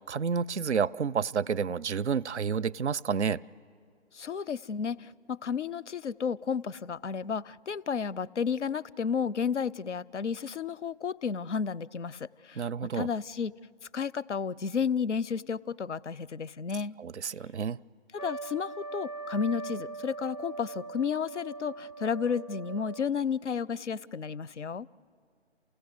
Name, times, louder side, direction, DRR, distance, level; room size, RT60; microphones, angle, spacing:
voice 1, 0.1-3.4 12.6-13.1 17.0-17.8, right 6 dB, 75° right, 24 dB, 0.5 m, -30 dB
voice 2, 4.1-12.7 12.9-13.5 13.9-16.9 18.1-24.9, left 6 dB, 85° left, 21 dB, 0.5 m, -32 dB
Trumpet, 18.2-23.2, right 3 dB, 25° right, 0.5 m, -41 dB
28.0 x 16.0 x 8.1 m, 2.2 s
figure-of-eight pair, 150°, 34 cm